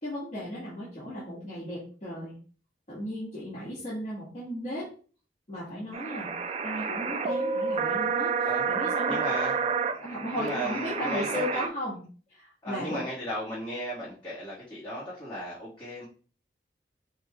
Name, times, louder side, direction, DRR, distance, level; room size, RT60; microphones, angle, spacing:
voice 1, 0.0-2.3 2.9-4.9 5.5-9.5 9.9-12.0 12.3-13.0, equal, 40° left, -10 dB, 1.9 m, -36 dB
sound 1, 5.9-11.7, right 5 dB, 35° right, 0.4 m, -29 dB
voice 2, 9.1-9.5 10.3-11.6 12.6-16.0, equal, 25° left, -10 dB, 1.6 m, -35 dB
5.3 x 2.6 x 3.4 m, 0.40 s
head